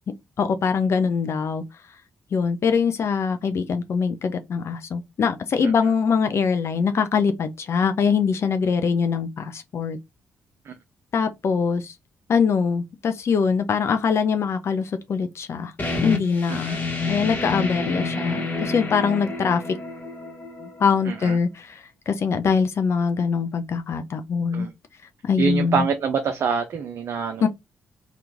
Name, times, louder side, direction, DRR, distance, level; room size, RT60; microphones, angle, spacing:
voice 1, 0.4-1.6 2.3-10.0 11.1-11.9 12.3-15.7 16.0-16.8 17.1-19.6 20.6-24.7 25.2-25.9 27.4-27.5, left 6 dB, 50° left, 0.5 m, -23 dB
sound 1, 15.8-21.2, left 3 dB, 30° left, 1.2 m, -29 dB
voice 2, 16.5-16.8 21.1-21.4 24.5-24.7 25.4-27.5, right 6 dB, 55° right, 0.5 m, -25 dB
2.9 x 2.4 x 3.4 m
hypercardioid pair, 40°, 6 cm